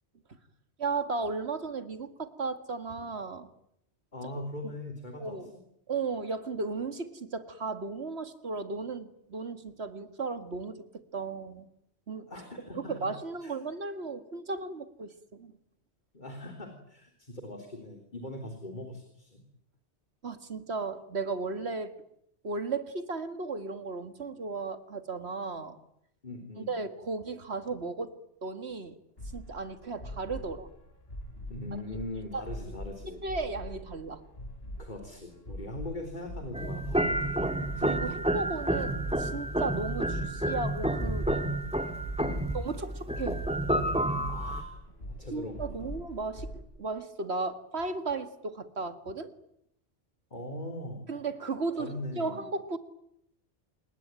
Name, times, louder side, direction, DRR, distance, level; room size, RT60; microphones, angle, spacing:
voice 1, 0.8-3.5 4.6-4.7 5.2-5.5 5.9-11.7 12.1-12.3 12.7-15.5 20.2-21.9 22.4-25.8 26.6-29.0 29.3-30.7 32.3-32.4 33.2-34.2 36.6-36.7 37.6-41.3 42.5-43.5 45.3-46.5 46.8-49.3 51.1-52.8, right 3 dB, 65° right, 9 dB, 2.2 m, -35 dB
voice 2, 4.1-5.4 12.3-13.1 13.4-13.5 16.1-19.4 26.2-26.8 31.5-33.2 34.8-37.6 38.1-38.3 42.2-42.5 44.3-44.8 45.1-45.9 50.3-51.1 51.8-52.5, left 1 dB, 45° left, 4 dB, 3.8 m, -41 dB
sound 1, 29.2-46.6, equal, 60° left, 5.0 m, -43 dB
sound 2, 36.5-44.6, right 1 dB, 5° right, 2.1 m, -30 dB
27.5 x 22.5 x 9.1 m, 0.76 s
omnidirectional pair, 1.1 m